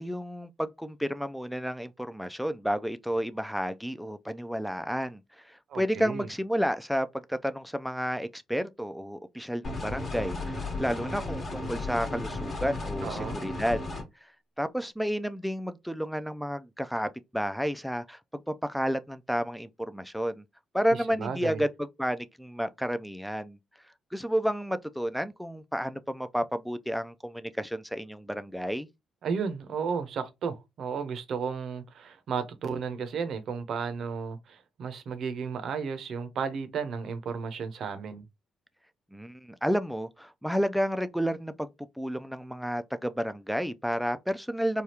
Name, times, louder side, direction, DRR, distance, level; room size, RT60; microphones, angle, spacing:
voice 1, 0.0-13.8 14.2-14.3 14.6-18.2 18.5-20.4 20.7-23.6 24.1-28.9 39.1-41.7 42.0-44.8, equal, ahead, 0.3 m, -31 dB
voice 2, 5.7-6.3 13.0-13.4 20.9-21.6 29.2-38.2, right 6 dB, 65° right, 0.7 m, -33 dB
sound 1, 9.6-14.0, left 2 dB, 45° left, 1.1 m, -34 dB
3.4 x 2.3 x 2.8 m
supercardioid pair, 65°, 0 cm